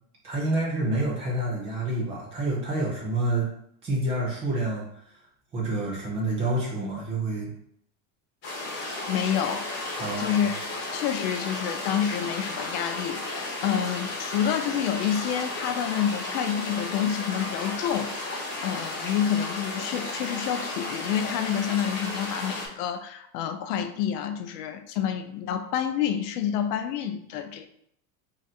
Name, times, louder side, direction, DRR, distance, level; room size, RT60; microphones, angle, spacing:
voice 1, 0.2-3.5 3.8-4.8 5.5-7.5 10.0-10.5, right 2 dB, 15° right, -3 dB, 0.4 m, -28 dB
sound 1, 8.4-22.7, left 2 dB, 25° left, 1.0 m, -34 dB
voice 2, 9.1-9.7 10.2-10.6 10.9-27.7, left 9 dB, 85° left, 8 dB, 0.7 m, -28 dB
3.7 x 2.5 x 4.1 m, 0.71 s
supercardioid pair, 175°, 47 cm